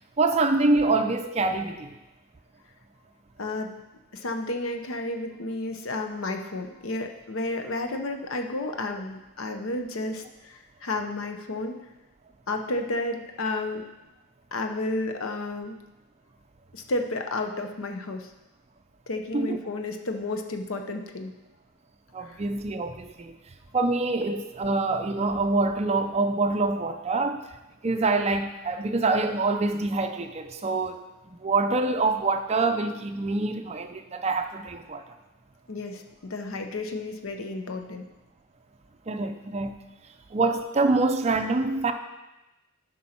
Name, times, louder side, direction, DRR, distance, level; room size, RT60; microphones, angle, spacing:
voice 1, 0.2-2.0 19.3-19.6 22.1-23.4 23.7-27.5 27.8-31.0 31.4-35.0 39.1-39.7 40.3-41.9, right 3 dB, 30° right, 7 dB, 0.5 m, -25 dB
voice 2, 3.4-3.7 4.1-11.8 12.5-13.8 14.5-15.8 16.7-18.3 19.1-21.3 22.2-22.4 35.7-38.1, left 2 dB, 80° left, 5 dB, 0.8 m, -32 dB
11.5 x 5.4 x 4.4 m, 1.0 s
head